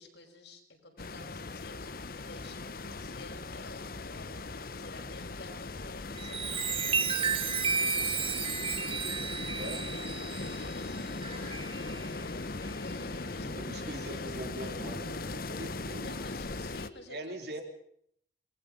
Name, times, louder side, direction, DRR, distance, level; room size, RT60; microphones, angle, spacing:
voice 1, 0.0-1.9 2.2-15.3 16.0-17.6, left 2 dB, 80° left, 2 dB, 5.9 m, -52 dB
sound 1, 1.0-16.9, left 3 dB, 55° left, 1.0 m, -39 dB
Chime, 6.1-12.1 12.6-12.9, right 5 dB, 30° right, 1.4 m, -33 dB
voice 2, 9.6-9.9 13.4-16.2 17.1-17.6, right 1 dB, 65° right, 4 dB, 3.8 m, -42 dB
28.0 x 21.0 x 5.3 m, 0.66 s
head